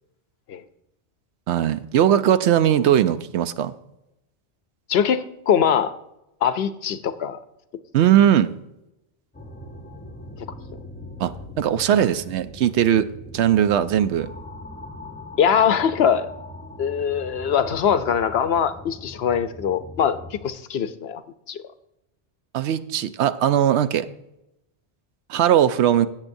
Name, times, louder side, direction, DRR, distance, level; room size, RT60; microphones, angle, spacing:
voice 1, 1.5-3.7 7.9-8.5 11.2-11.3 11.6-13.1 13.3-14.3 22.5-24.1 25.3-26.1, right 10 dB, 75° right, 13 dB, 0.8 m, -19 dB
voice 2, 4.9-5.9 6.4-7.4 15.4-16.3 16.8-20.2 20.4-21.2 21.5-21.6, left 8 dB, 65° left, 12 dB, 0.8 m, -22 dB
sound 1, 9.3-20.5, left 2 dB, 10° left, 0.7 m, -40 dB
17.0 x 7.4 x 2.6 m, 0.88 s
omnidirectional pair, 1.2 m